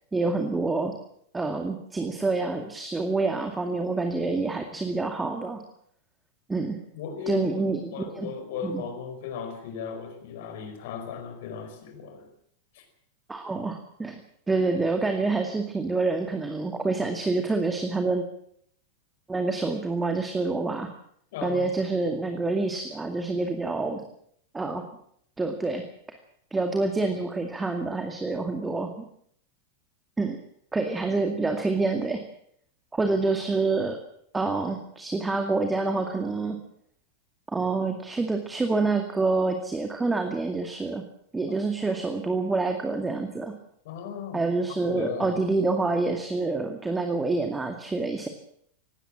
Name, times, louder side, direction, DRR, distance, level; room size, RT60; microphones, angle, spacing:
voice 1, 0.1-0.9 1.3-5.6 6.5-6.8 7.3-8.3 8.6-8.8 13.3-14.2 14.5-18.3 19.3-20.9 21.4-24.0 24.5-24.9 25.4-26.2 26.5-29.0 30.2-30.4 30.7-32.2 32.9-34.0 34.3-36.6 37.5-41.1 41.3-43.5 44.3-48.3, right 3 dB, 10° right, 5 dB, 2.2 m, -27 dB
voice 2, 6.9-12.3 12.7-12.8 21.3-21.7 43.8-44.4 44.8-45.4, left 6 dB, 55° left, 6 dB, 5.0 m, -36 dB
20.0 x 17.5 x 7.5 m, 0.67 s
figure-of-eight pair, 90°, 0 cm